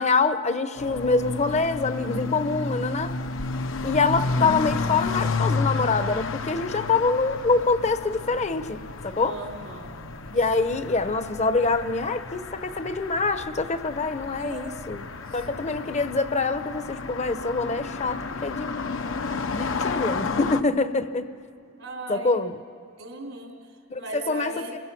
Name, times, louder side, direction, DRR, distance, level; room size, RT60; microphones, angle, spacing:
voice 1, 0.0-3.1 3.8-9.4 10.3-18.8 19.5-21.3 22.1-22.5 23.9-24.5, left 3 dB, 35° left, 10 dB, 0.9 m, -25 dB
sound 1, 0.8-20.6, left 4 dB, 70° left, 0.9 m, -31 dB
voice 2, 9.2-9.9 14.2-15.0 15.3-15.5 21.8-22.4 23.0-24.8, right 2 dB, 85° right, 0 dB, 4.4 m, -38 dB
29.0 x 23.0 x 6.0 m, 2.5 s
head